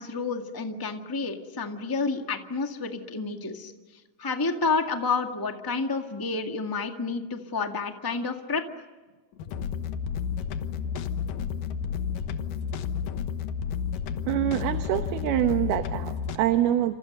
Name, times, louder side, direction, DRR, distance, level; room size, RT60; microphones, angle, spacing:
voice 1, 0.0-3.7 4.2-8.6, left 4 dB, 20° left, 4 dB, 0.5 m, -29 dB
sound 1, 9.3-16.4, left 7 dB, 70° left, 2.7 m, -31 dB
voice 2, 14.3-16.9, right 12 dB, 85° right, 8 dB, 3.1 m, -25 dB
29.5 x 27.5 x 6.7 m, 1.3 s
omnidirectional pair, 4.4 m